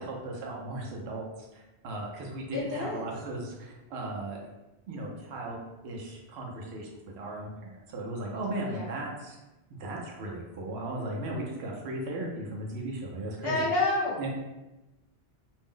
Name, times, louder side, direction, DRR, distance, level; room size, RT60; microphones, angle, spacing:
voice 1, 0.0-4.4 4.9-5.6 5.8-6.9 7.2-9.4 9.8-13.6 14.2-14.3, right 2 dB, 75° right, -1 dB, 0.9 m, -36 dB
voice 2, 2.5-3.1 8.6-9.0 13.4-14.3, left 2 dB, 70° left, -4 dB, 0.8 m, -29 dB
2.6 x 2.0 x 3.6 m, 1.0 s
omnidirectional pair, 1.1 m